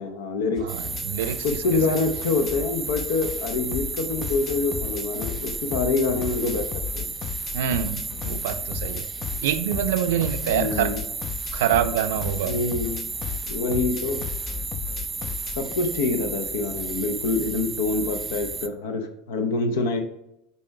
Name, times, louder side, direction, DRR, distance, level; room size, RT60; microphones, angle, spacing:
voice 1, 0.0-0.7 1.4-6.7 6.9-7.1 10.5-11.0 12.4-13.1 13.5-14.2 15.6-20.0, left 3 dB, 75° left, 6 dB, 0.7 m, -26 dB
sound 1, 0.6-15.7, left 9 dB, 40° left, 0.3 m, -35 dB
voice 2, 0.6-1.6 1.9-2.0 7.5-9.1 9.4-10.9 11.5-12.6, right 10 dB, 70° right, 11 dB, 0.4 m, -26 dB
sound 2, 0.7-18.7, right 4 dB, 20° right, 0.5 m, -33 dB
5.4 x 4.2 x 4.5 m, 0.81 s
hypercardioid pair, 80°, 0 cm